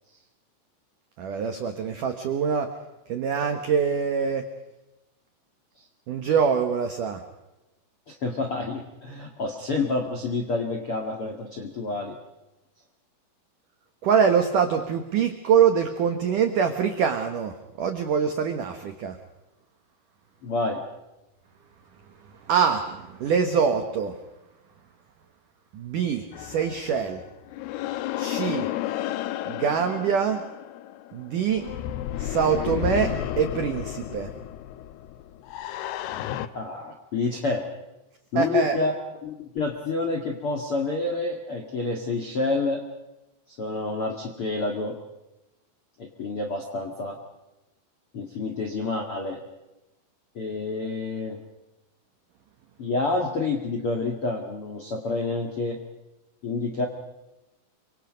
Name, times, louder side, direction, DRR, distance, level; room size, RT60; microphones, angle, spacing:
voice 1, 1.2-2.7 3.1-4.5 6.1-7.2 14.0-19.2 22.5-24.1 25.7-27.2 28.2-28.7 29.5-30.4 31.1-31.7 32.2-34.3 38.4-38.8, right 7 dB, 85° right, 6 dB, 1.8 m, -24 dB
voice 2, 8.1-12.2 20.4-20.8 36.5-37.6 38.3-38.9 39.2-42.8 43.6-44.9 46.0-47.2 48.1-49.4 50.3-51.4 52.8-55.8 56.4-56.8, left 3 dB, 60° left, 2 dB, 1.5 m, -28 dB
sound 1, 26.3-36.5, left 12 dB, 85° left, 2.3 m, -32 dB
27.0 x 24.5 x 5.2 m, 1.0 s
omnidirectional pair, 5.8 m